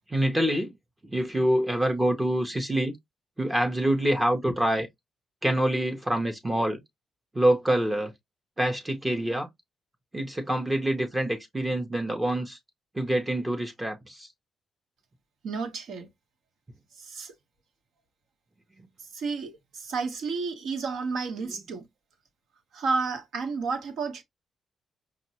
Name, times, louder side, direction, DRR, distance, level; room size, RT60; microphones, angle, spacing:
voice 1, 0.1-0.7 1.1-3.0 3.4-4.9 5.4-6.8 7.3-8.1 8.6-9.5 10.1-12.6 12.9-14.3, right 1 dB, 15° right, 0.6 m, -26 dB
voice 2, 15.4-16.1 17.0-17.3 19.0-21.9 22.7-24.2, right 4 dB, 75° right, 0.9 m, -31 dB
5.2 x 2.0 x 2.7 m
cardioid pair, 145°, 0 cm